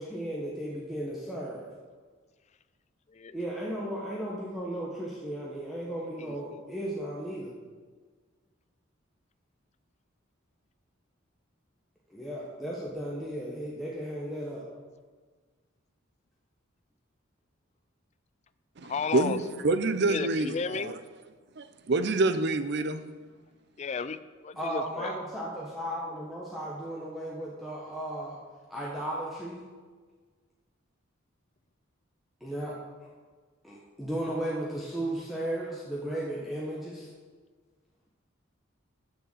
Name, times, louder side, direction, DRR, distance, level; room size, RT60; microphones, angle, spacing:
voice 1, 0.0-1.7 3.3-7.5 12.1-14.6 24.6-28.4 28.7-29.6 32.4-33.1 33.6-37.1, right 1 dB, ahead, 1.2 m, -35 dB
voice 2, 6.2-6.6 18.8-19.4 20.0-20.9 23.8-25.1, left 5 dB, 35° left, 0.3 m, -34 dB
voice 3, 18.8-20.9 21.6-23.0, right 2 dB, 55° right, 0.6 m, -27 dB
6.7 x 6.6 x 7.8 m
head